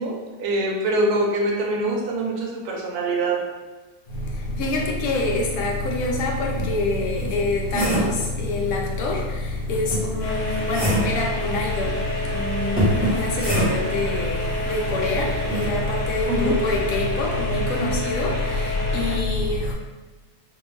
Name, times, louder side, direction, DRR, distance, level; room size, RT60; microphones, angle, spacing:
voice 1, 0.0-3.4 16.3-16.5, right 2 dB, 75° right, -1 dB, 1.1 m, -24 dB
voice 2, 4.1-19.7, left 2 dB, 70° left, -1 dB, 1.0 m, -25 dB
sound 1, 5.9-6.0 6.6-8.2 9.9-11.2 12.8-14.0 15.5-15.7, right 1 dB, 10° right, 0.6 m, -25 dB
sound 2, 10.2-19.2, left 1 dB, 90° left, 1.4 m, -30 dB
2.7 x 2.5 x 3.1 m, 1.2 s
omnidirectional pair, 1.7 m